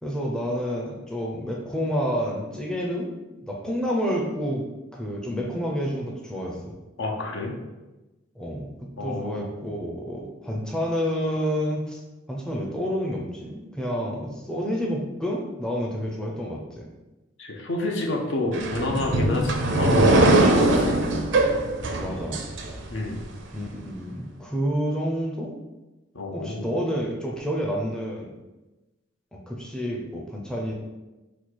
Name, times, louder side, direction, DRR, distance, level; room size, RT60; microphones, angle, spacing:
voice 1, 0.0-3.1 3.4-6.8 8.3-8.7 9.0-12.0 12.3-16.9 22.0-22.4 23.5-25.6 26.3-28.3 29.3-30.7, equal, 5° left, -2 dB, 0.5 m, -29 dB
voice 2, 7.0-7.6 9.0-9.4 17.4-21.0 22.9-23.2 26.1-26.7, left 2 dB, 70° left, 0 dB, 0.8 m, -29 dB
sound 1, 18.5-23.2, right 2 dB, 65° right, 0.5 m, -21 dB
4.3 x 2.3 x 4.5 m, 1.1 s
head